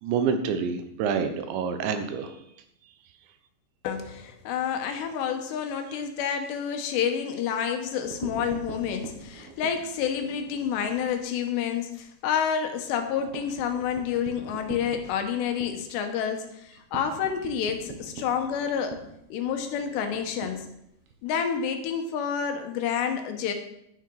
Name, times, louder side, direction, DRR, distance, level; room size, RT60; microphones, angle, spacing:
voice 1, 0.0-2.4, right 6 dB, 80° right, 8 dB, 3.3 m, -27 dB
voice 2, 3.8-19.0 19.3-20.7 21.2-23.5, left 8 dB, 75° left, 5 dB, 3.2 m, -29 dB
sound 1, 7.9-11.1 11.5-11.6 11.9-12.0 12.4-21.2, right 4 dB, 65° right, 3.4 m, -43 dB
12.0 x 9.9 x 4.7 m, 0.76 s
omnidirectional pair, 5.2 m